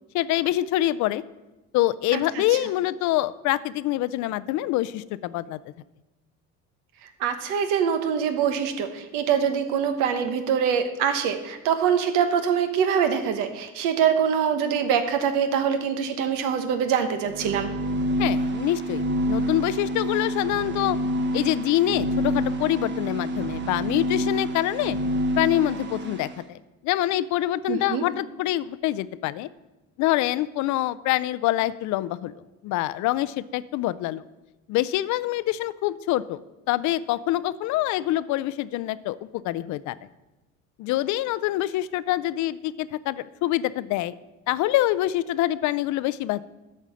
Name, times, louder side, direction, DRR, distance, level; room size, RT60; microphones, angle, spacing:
voice 1, 0.1-1.2 1.7-5.6 18.2-21.0 21.3-25.0 25.4-26.6 26.8-29.5 30.0-32.3 32.6-34.3 34.7-36.4 36.7-40.0 40.8-44.1 44.5-46.4, left 15 dB, 65° left, 17 dB, 0.5 m, -25 dB
voice 2, 7.2-17.7 27.7-28.0, right 7 dB, 85° right, 8 dB, 1.1 m, -24 dB
sound 1, 17.2-26.3, right 1 dB, 35° right, 1.1 m, -28 dB
8.4 x 5.5 x 7.4 m, 1.0 s
cardioid pair, 115°, 31 cm